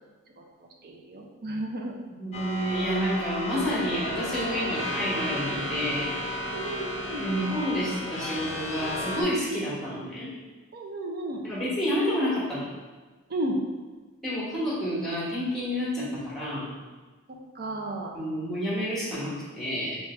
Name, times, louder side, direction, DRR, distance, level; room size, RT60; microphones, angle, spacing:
voice 1, 0.8-2.0 6.5-7.3 9.5-9.6 10.7-11.4 13.3-13.6 16.0-16.3 17.6-18.1, right 1 dB, 45° right, 1 dB, 0.6 m, -33 dB
voice 2, 2.2-6.1 7.2-10.3 11.4-12.6 14.2-16.6 18.1-20.0, equal, ahead, -8 dB, 1.5 m, -29 dB
sound 1, 2.3-9.2, left 1 dB, 30° left, 0.6 m, -33 dB
3.2 x 3.0 x 4.4 m, 1.3 s
head